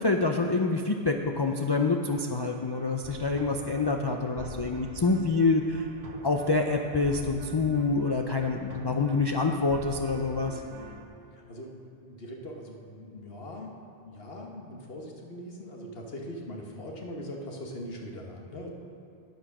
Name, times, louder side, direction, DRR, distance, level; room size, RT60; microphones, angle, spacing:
voice 1, 0.0-5.8 6.2-10.6, left 3 dB, 40° left, 3 dB, 0.4 m, -26 dB
sound 1, 1.9-11.0, right 3 dB, 60° right, 1.1 m, -45 dB
voice 2, 10.6-11.0 11.4-13.7 14.0-18.7, left 1 dB, 65° left, 0 dB, 1.5 m, -41 dB
9.2 x 8.9 x 6.0 m, 2.5 s
omnidirectional pair, 1.1 m